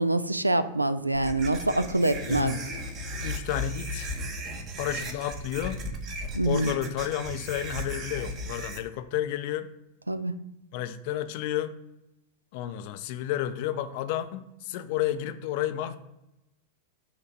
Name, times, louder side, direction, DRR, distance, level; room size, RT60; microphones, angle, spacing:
voice 1, 0.0-2.6 6.3-6.8 10.1-10.3, right 2 dB, 85° right, 13 dB, 0.3 m, -25 dB
sound 1, 1.1-8.8, equal, 35° right, 1.0 m, -36 dB
voice 2, 2.2-2.9 3.2-4.1 4.8-5.9 6.5-9.7 10.7-11.7 12.5-16.0, left 11 dB, 50° left, 11 dB, 0.4 m, -31 dB
5.8 x 3.3 x 5.2 m, 0.91 s
figure-of-eight pair, 90°, 0 cm